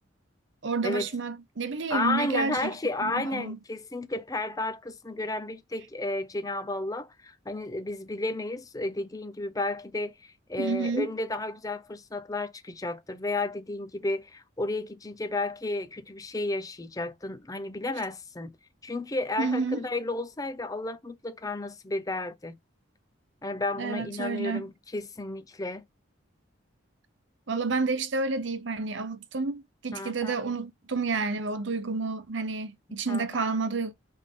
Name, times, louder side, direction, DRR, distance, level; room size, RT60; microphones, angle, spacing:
voice 1, 0.6-2.7 3.0-3.6 10.6-11.1 19.4-19.8 23.8-24.7 27.5-33.9, right 4 dB, 65° right, 0.7 m, -30 dB
voice 2, 1.9-18.5 18.8-22.5 23.4-25.9 29.9-30.4 32.9-33.5, left 2 dB, 15° left, 0.5 m, -32 dB
3.6 x 3.5 x 3.6 m
head